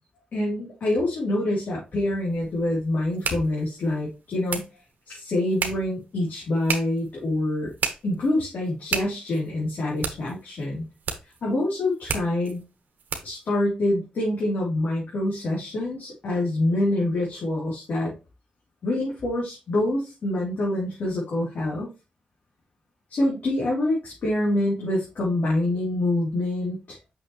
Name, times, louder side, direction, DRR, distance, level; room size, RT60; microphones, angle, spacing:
voice 1, 0.3-4.6 5.1-7.7 8.0-10.8 11.4-12.6 13.2-18.1 18.8-21.9 23.1-27.0, left 1 dB, 70° left, -5 dB, 3.3 m, -26 dB
sound 1, 1.9-13.5, right 6 dB, 75° right, 1.3 m, -35 dB
6.2 x 6.1 x 3.1 m, 0.28 s
cardioid pair, 60°, 3 cm